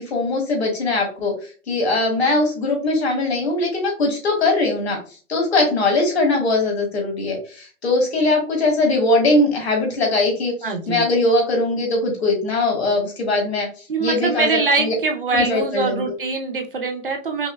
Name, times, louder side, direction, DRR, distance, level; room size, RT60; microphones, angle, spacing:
voice 1, 0.0-1.3 1.7-5.0 5.3-10.5 10.9-13.7 14.0-14.9 15.3-16.1, left 2 dB, 45° left, 0 dB, 1.5 m, -20 dB
voice 2, 10.6-11.1 13.9-17.5, right 3 dB, 40° right, 4 dB, 0.6 m, -23 dB
5.4 x 2.1 x 2.2 m, 0.39 s
hypercardioid pair, 175°, 42 cm